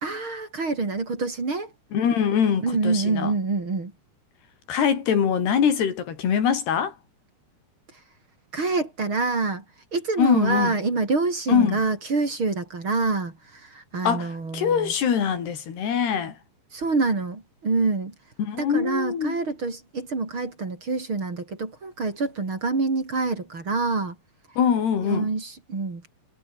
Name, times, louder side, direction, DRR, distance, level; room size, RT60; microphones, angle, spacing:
voice 1, 0.0-1.7 2.6-3.9 8.5-9.6 9.9-14.9 16.7-18.1 18.6-24.2 25.1-26.1, right 3 dB, 30° right, 4.4 m, -26 dB
voice 2, 1.9-3.3 4.7-6.9 10.2-10.8 11.5-11.8 14.1-14.3 14.5-16.3 18.4-19.4 24.6-25.3, left 7 dB, 85° left, 5.7 m, -23 dB
omnidirectional pair, 4.5 m